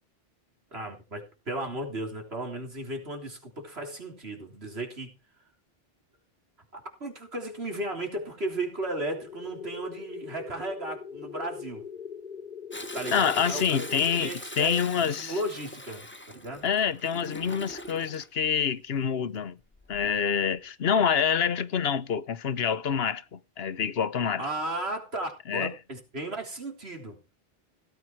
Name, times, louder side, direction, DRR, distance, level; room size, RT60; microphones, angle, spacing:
voice 1, 0.7-5.1 6.7-11.8 12.9-16.6 24.4-27.2, right 2 dB, 85° right, 3.8 m, -35 dB
sound 1, 9.2-14.2, left 7 dB, 50° left, 1.4 m, -41 dB
Toilet flush, 12.7-18.3 19.7-20.2 20.7-20.8, left 1 dB, 10° left, 1.2 m, -41 dB
voice 2, 13.1-15.4 16.6-19.6 19.9-24.5 25.5-25.7, left 7 dB, 75° left, 1.1 m, -27 dB
17.0 x 9.3 x 4.6 m
omnidirectional pair, 1.0 m